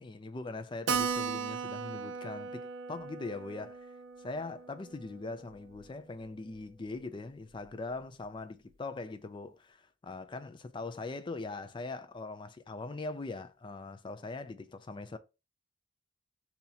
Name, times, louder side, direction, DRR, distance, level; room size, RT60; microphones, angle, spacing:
voice 1, 0.0-3.9 4.2-15.2, left 3 dB, 25° left, 0.4 m, -41 dB
Keyboard (musical), 0.9-5.9 6.2-6.3 6.6-6.7 6.9-7.0 7.6-7.9, right 6 dB, 85° right, 0.4 m, -37 dB
2.8 x 2.8 x 4.0 m
head